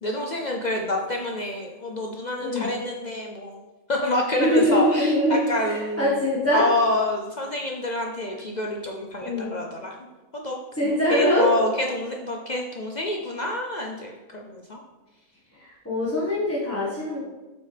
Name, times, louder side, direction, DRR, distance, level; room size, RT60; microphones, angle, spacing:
voice 1, 0.0-3.6 3.9-6.2 6.5-10.0 10.3-14.8, left 1 dB, 55° left, 1 dB, 0.5 m, -27 dB
voice 2, 2.4-2.7 4.4-6.6 9.2-9.5 10.7-11.5 15.6-17.2, equal, 10° left, -9 dB, 1.3 m, -23 dB
7.0 x 5.5 x 3.3 m, 1.2 s
omnidirectional pair, 1.4 m